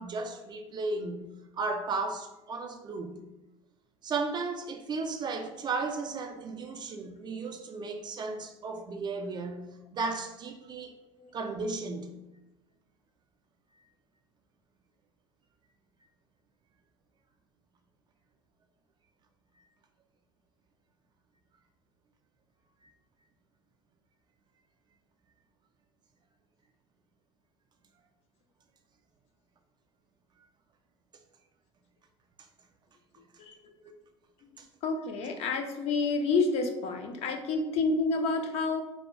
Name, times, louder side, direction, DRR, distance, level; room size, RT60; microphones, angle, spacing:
voice 1, 0.0-3.2 4.0-10.9 11.3-12.1 33.8-33.9 34.6-34.7, right 3 dB, 30° right, 4 dB, 0.3 m, -35 dB
voice 2, 33.4-33.8 34.4-34.5 34.8-38.8, left 3 dB, 45° left, 4 dB, 0.4 m, -29 dB
2.1 x 2.1 x 3.5 m, 1.0 s
hypercardioid pair, 75°, 15 cm